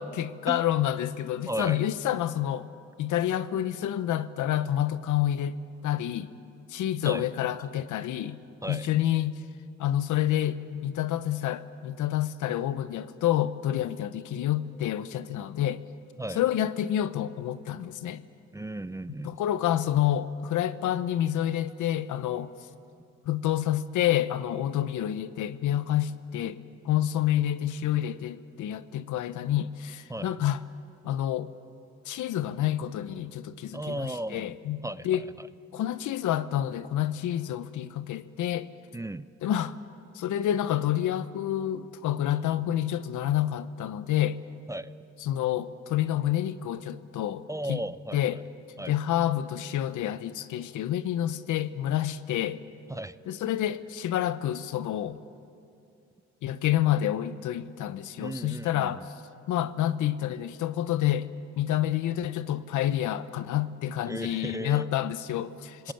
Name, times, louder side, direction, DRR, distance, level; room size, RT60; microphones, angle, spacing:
voice 1, 0.0-2.7 3.0-5.5 5.8-6.3 6.7-8.4 8.7-9.4 9.8-15.8 16.3-18.2 19.2-22.5 23.2-26.6 26.8-30.6 31.0-31.5 32.0-35.2 35.7-38.7 39.4-39.8 40.1-44.4 45.2-47.8 48.1-48.4 48.9-52.6 53.3-55.2 56.4-59.1 59.5-61.3 61.6-65.9, left 12 dB, 80° left, 13 dB, 1.0 m, -28 dB
voice 2, 1.5-1.8 7.0-7.3 8.6-8.9 16.2-16.4 18.5-19.4 30.1-30.3 33.7-34.5 34.8-35.5 38.9-39.3 44.7-44.9 47.5-48.4 48.8-49.0 52.9-53.2 58.2-59.1 64.1-64.9, right 1 dB, 10° right, 15 dB, 0.5 m, -35 dB
27.0 x 19.0 x 8.8 m, 2.5 s
cardioid pair, 90°, 30 cm